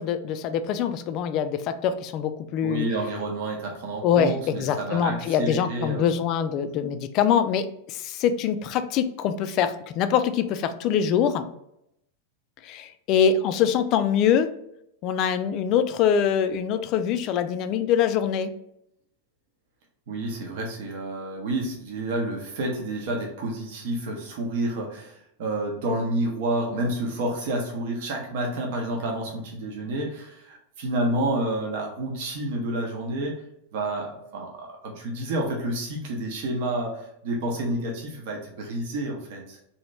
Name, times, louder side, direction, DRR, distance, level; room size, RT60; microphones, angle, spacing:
voice 1, 0.0-2.8 4.0-11.5 12.6-14.5 15.0-18.5, left 8 dB, 40° left, 10 dB, 0.3 m, -24 dB
voice 2, 2.6-6.1 20.1-33.4 33.7-39.6, right 1 dB, 50° right, 0 dB, 0.8 m, -29 dB
2.9 x 2.7 x 3.2 m, 0.77 s
figure-of-eight pair, 90°, 0 cm